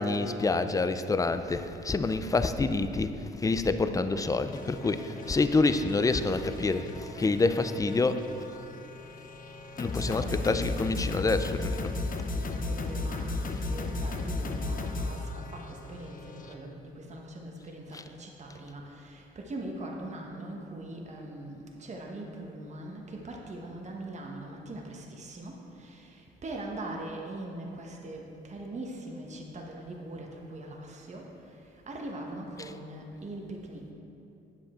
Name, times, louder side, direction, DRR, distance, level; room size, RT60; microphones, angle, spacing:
voice 1, 0.0-8.3 9.8-12.0 13.5-13.7 17.9-18.0 32.6-32.7, left 3 dB, 15° left, 10 dB, 0.4 m, -27 dB
sound 1, 4.5-16.5, left 2 dB, 45° left, 0.8 m, -35 dB
voice 2, 10.0-10.7 11.9-33.9, right 1 dB, 35° right, 0 dB, 1.2 m, -41 dB
8.7 x 7.7 x 4.3 m, 2.8 s
cardioid pair, 90°, 20 cm